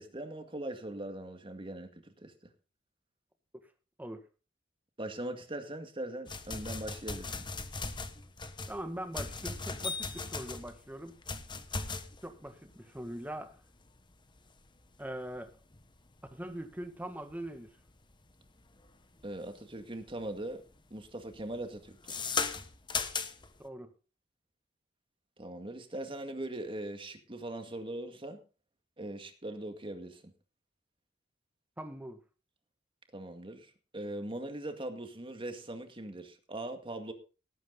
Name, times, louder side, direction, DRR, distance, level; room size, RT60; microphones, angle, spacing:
voice 1, 0.0-2.5 5.0-7.5 19.2-20.6 20.9-22.3 25.4-28.4 29.0-30.3 33.1-37.1, right 1 dB, 30° right, 2.0 m, -41 dB
sound 1, 6.3-19.6 20.0-20.4 20.7-23.6, left 4 dB, 25° left, 1.1 m, -38 dB
voice 2, 8.7-11.1 12.2-13.6 15.0-15.5 16.3-17.7 23.6-23.9 31.8-32.2, right 1 dB, 10° right, 1.8 m, -41 dB
18.0 x 9.1 x 3.9 m
head